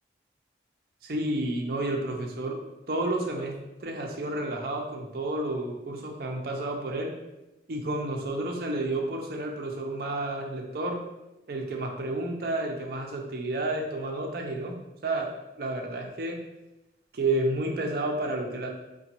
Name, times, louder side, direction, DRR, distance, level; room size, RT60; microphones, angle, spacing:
voice 1, 1.0-2.6 2.9-7.1 7.7-11.0 11.5-14.7 15.0-15.3 15.6-16.4 17.1-18.7, right 2 dB, 55° right, 1 dB, 0.5 m, -30 dB
4.9 x 2.2 x 2.9 m, 0.97 s
head